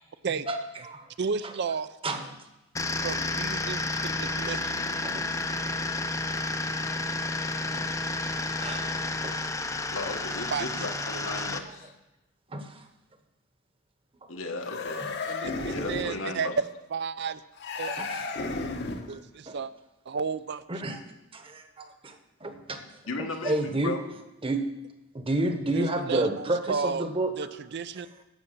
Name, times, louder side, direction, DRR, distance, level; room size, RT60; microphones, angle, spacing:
voice 1, 0.5-1.1 2.0-2.3 4.2-4.4 5.0-5.3 6.6-6.7 7.7-7.9 8.6-9.0 9.2-9.4 12.5-12.8 14.9-15.1 17.9-18.3 18.8-18.9 19.5-19.6 20.7-21.0 21.3-22.2 22.4-22.8 23.4-24.0 24.4-24.7 25.1-27.3, right 2 dB, 25° right, 7 dB, 1.0 m, -30 dB
voice 2, 1.2-2.0 3.0-4.9 10.5-10.9 15.3-16.5 16.9-17.4 17.8-18.0 19.1-19.7 20.1-20.6 25.7-27.1 27.4-28.1, right 5 dB, 55° right, 14 dB, 0.5 m, -33 dB
sound 1, 2.8-11.6, left 2 dB, 15° left, 0.5 m, -31 dB
voice 3, 9.9-11.9 14.3-15.1 15.7-16.5 23.1-24.0, left 2 dB, 80° left, 4 dB, 1.4 m, -35 dB
sound 2, 14.6-16.2 17.6-19.2, left 3 dB, 55° left, 1.0 m, -33 dB
11.5 x 7.1 x 6.7 m, 0.94 s
head